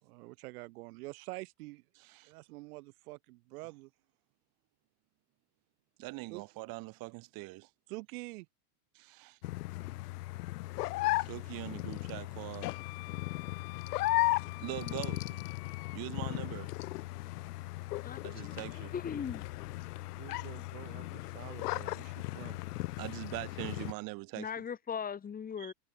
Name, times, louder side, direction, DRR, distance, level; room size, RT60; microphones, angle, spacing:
voice 1, 0.0-1.8 2.2-3.9 6.3-6.4 7.9-8.5 20.2-22.6, right 22 dB, 65° right, 6.1 m, -46 dB
voice 2, 2.0-2.3 6.0-7.7 8.9-9.4 11.2-12.7 14.6-15.4 15.9-16.7 18.2-18.9 23.0-24.5 25.6-25.7, right 23 dB, 45° right, 3.2 m, -42 dB
sound 1, 9.4-23.9, left 19 dB, 75° left, 1.4 m, -36 dB
Wind instrument woodwind instrument, 12.6-16.0, left 35 dB, 55° left, 6.0 m, -49 dB
voice 3, 18.0-19.4 24.3-25.7, left 7 dB, 20° left, 2.2 m, -39 dB
supercardioid pair, 140°, 47 cm